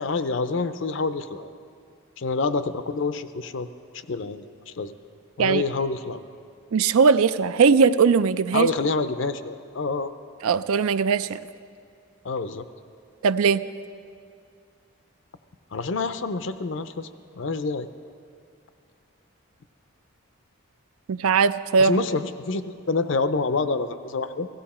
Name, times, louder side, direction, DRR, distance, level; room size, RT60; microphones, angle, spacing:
voice 1, 0.0-1.5 2.2-3.7 3.9-4.9 5.4-6.3 8.5-10.1 12.2-12.7 15.7-17.1 17.4-17.9 21.8-24.5, left 3 dB, 60° left, 12 dB, 0.5 m, -27 dB
voice 2, 6.7-8.7 10.4-11.4 13.2-13.7 21.1-22.0, right 5 dB, 85° right, 14 dB, 0.4 m, -19 dB
16.5 x 15.0 x 4.3 m, 2.3 s
head